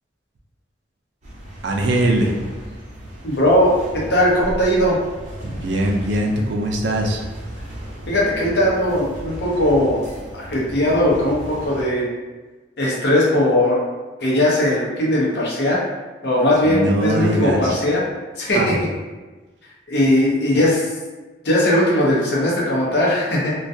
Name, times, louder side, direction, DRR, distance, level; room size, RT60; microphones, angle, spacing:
sound 1, 1.2-11.8, equal, 40° right, 0.6 m, -35 dB
voice 1, 1.6-2.4 5.4-7.2 16.6-17.7 18.5-18.7, right 1 dB, 80° right, 1 dB, 0.4 m, -21 dB
voice 2, 3.2-5.0 8.1-10.0 10.3-12.1 12.8-13.8 14.2-15.8 16.2-18.0 18.4-18.9 19.9-20.9 21.4-23.6, left 1 dB, 65° left, -4 dB, 0.7 m, -18 dB
2.3 x 2.2 x 2.6 m, 1.2 s
head